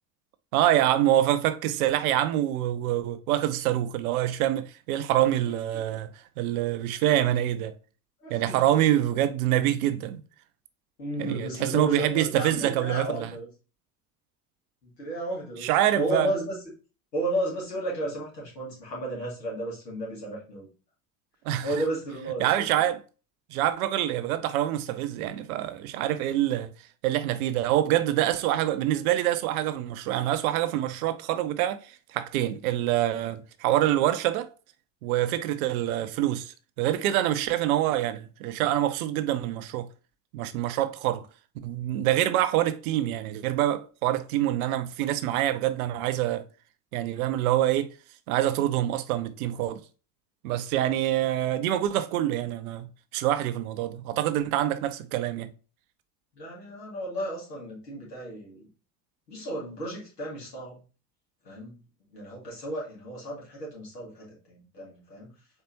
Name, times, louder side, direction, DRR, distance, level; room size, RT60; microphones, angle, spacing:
voice 1, 0.5-6.1 6.4-7.7 8.3-10.2 11.2-13.3 15.6-16.3 21.4-21.7 22.4-23.0 23.5-26.7 27.0-34.5 35.0-39.9 40.3-41.2 41.6-46.4 46.9-47.9 48.3-49.8 50.4-52.9 53.1-55.5, right 13 dB, 65° right, 0.6 m, -26 dB
voice 2, 8.2-8.8 11.0-13.5 14.8-16.6 17.1-20.7 21.6-22.8 56.4-58.7 59.3-60.8 61.4-61.7 62.1-65.3, right 1 dB, 80° left, 2.1 m, -33 dB
4.5 x 3.3 x 2.8 m
figure-of-eight pair, 70°, 48 cm